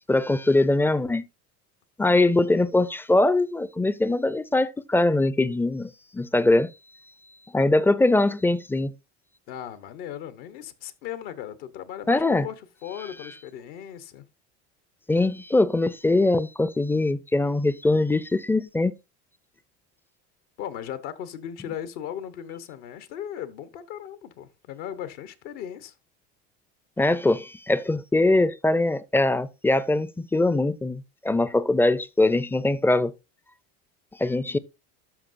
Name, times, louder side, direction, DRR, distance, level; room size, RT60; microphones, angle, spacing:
voice 1, 0.1-1.3 2.0-6.7 7.5-8.9 12.1-12.5 15.1-18.9 27.0-33.1 34.2-34.6, left 2 dB, 5° left, 0.4 m, -22 dB
voice 2, 9.5-12.6 12.8-14.2 20.6-25.9, left 10 dB, 75° left, 1.0 m, -37 dB
13.5 x 5.4 x 2.5 m
supercardioid pair, 95°, 34 cm